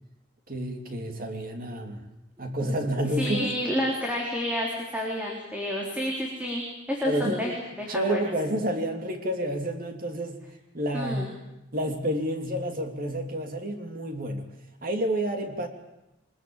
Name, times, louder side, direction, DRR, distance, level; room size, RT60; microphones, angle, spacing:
voice 1, 0.5-2.0 2.4-3.5 7.0-7.5 7.9-10.4 10.7-11.3 11.7-14.5 14.8-15.7, equal, 50° right, 4 dB, 3.1 m, -29 dB
voice 2, 3.2-6.6 6.9-7.5 7.8-8.2 10.9-11.3, equal, 5° right, -2 dB, 4.0 m, -29 dB
24.0 x 21.5 x 9.1 m, 0.92 s
head